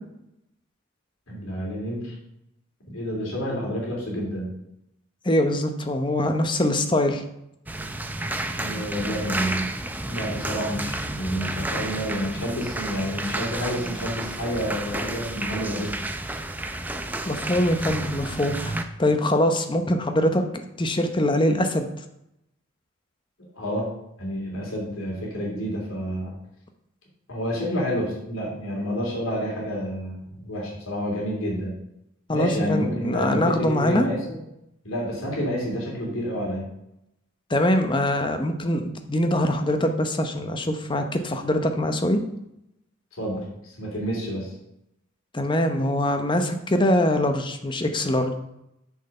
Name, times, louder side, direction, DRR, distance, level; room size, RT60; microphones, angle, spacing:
voice 1, 1.3-2.1 2.9-4.5 8.5-9.7 10.0-16.0 23.5-23.9 24.2-26.3 27.3-31.8 32.3-34.4 34.8-36.7 43.2-44.5, equal, 85° left, -3 dB, 2.9 m, -29 dB
voice 2, 5.2-7.2 17.3-20.4 20.8-21.9 32.3-34.1 37.5-42.2 45.3-48.3, left 1 dB, 25° left, 6 dB, 0.7 m, -23 dB
sound 1, 7.7-18.8, right 2 dB, 10° right, 0.5 m, -31 dB
6.6 x 6.5 x 5.4 m, 0.84 s
head